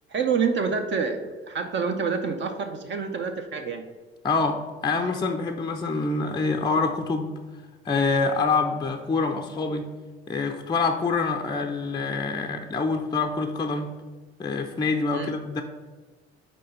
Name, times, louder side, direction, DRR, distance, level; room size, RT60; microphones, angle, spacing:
voice 1, 0.1-3.8 15.1-15.3, right 5 dB, 35° right, 6 dB, 0.7 m, -27 dB
voice 2, 4.2-7.3 7.8-9.9 10.3-13.9 14.4-15.6, left 4 dB, 15° left, 4 dB, 0.5 m, -26 dB
5.3 x 4.3 x 5.4 m, 1.3 s
figure-of-eight pair, 55°, 32 cm